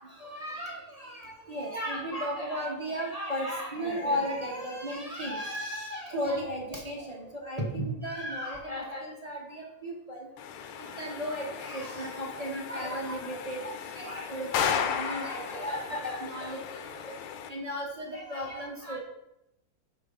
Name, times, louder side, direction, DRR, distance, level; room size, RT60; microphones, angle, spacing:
voice 1, 0.0-10.3 10.8-17.1 17.5-19.0, equal, 40° right, -2 dB, 0.5 m, -35 dB
sound 1, 10.4-17.5, left 8 dB, 80° left, 1.5 m, -35 dB
6.3 x 4.9 x 5.0 m, 0.88 s
omnidirectional pair, 2.4 m